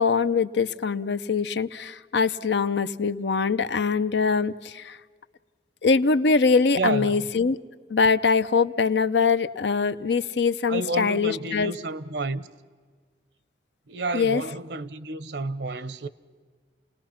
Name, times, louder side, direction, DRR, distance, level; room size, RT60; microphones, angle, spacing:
voice 1, 0.0-5.0 5.8-7.6 7.9-11.7 14.1-14.4, left 5 dB, 70° left, 0.6 m, -23 dB
voice 2, 6.7-7.2 10.7-12.5 13.9-16.1, right 3 dB, 65° right, 0.8 m, -30 dB
29.5 x 19.0 x 5.8 m
head